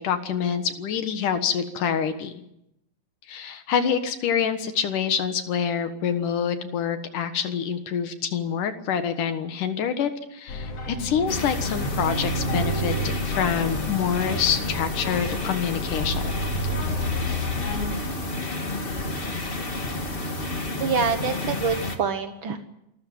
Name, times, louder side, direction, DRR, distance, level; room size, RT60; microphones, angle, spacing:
voice 1, 0.0-2.3 3.3-16.4, left 7 dB, 65° left, 9 dB, 2.9 m, -26 dB
sound 1, 10.5-17.9, left 1 dB, 90° left, 4.8 m, -30 dB
sound 2, 11.3-22.0, left 2 dB, 25° left, 1.4 m, -31 dB
voice 2, 20.8-22.7, right 5 dB, 80° right, 8 dB, 1.1 m, -26 dB
27.5 x 13.5 x 9.4 m, 0.83 s
omnidirectional pair, 4.1 m